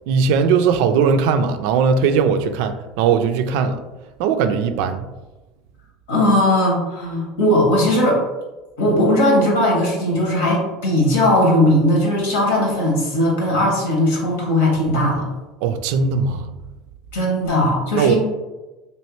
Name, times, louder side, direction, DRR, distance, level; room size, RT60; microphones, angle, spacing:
voice 1, 0.1-3.8 4.2-5.1 15.6-16.5 17.9-18.1, right 6 dB, 70° right, 0.3 m, -19 dB
voice 2, 6.1-8.2 8.8-15.2 17.1-18.1, left 1 dB, 85° left, 1.1 m, -18 dB
3.1 x 2.7 x 3.0 m
supercardioid pair, 100°, 0 cm